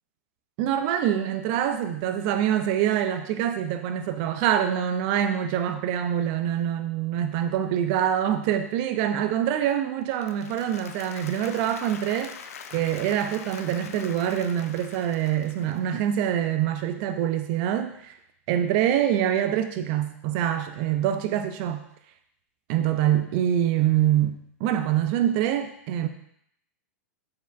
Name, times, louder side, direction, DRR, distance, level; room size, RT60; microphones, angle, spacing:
voice 1, 0.6-12.3 12.7-18.1 18.5-21.8 22.7-26.1, right 10 dB, 45° right, 8 dB, 0.3 m, -25 dB
Applause, 10.0-16.2, left 6 dB, 85° left, 0.4 m, -43 dB
4.5 x 3.4 x 2.4 m, 0.72 s
hypercardioid pair, 140°, 8 cm